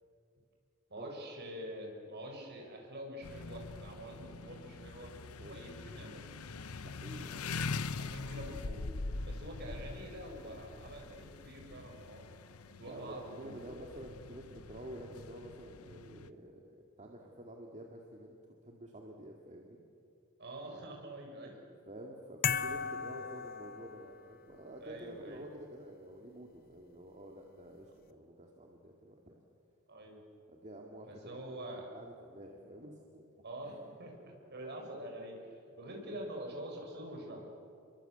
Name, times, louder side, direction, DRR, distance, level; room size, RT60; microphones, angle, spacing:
voice 1, 0.9-5.1 5.4-6.2 8.0-8.8 9.2-12.2 12.7-13.5 20.4-21.6 24.8-25.4 29.9-30.2 31.1-31.9 33.4-34.2 34.5-37.4, right 1 dB, 50° right, 1 dB, 6.4 m, -46 dB
sound 1, 3.2-16.3, left 4 dB, 85° left, 0.9 m, -43 dB
voice 2, 6.8-7.4 12.9-16.6 17.0-19.8 21.9-29.3 30.5-31.4 31.9-33.4, right 1 dB, 35° right, 1 dB, 2.2 m, -49 dB
sound 2, 22.4-24.3, left 7 dB, 45° left, 0.9 m, -36 dB
29.5 x 23.0 x 8.1 m, 2.5 s
head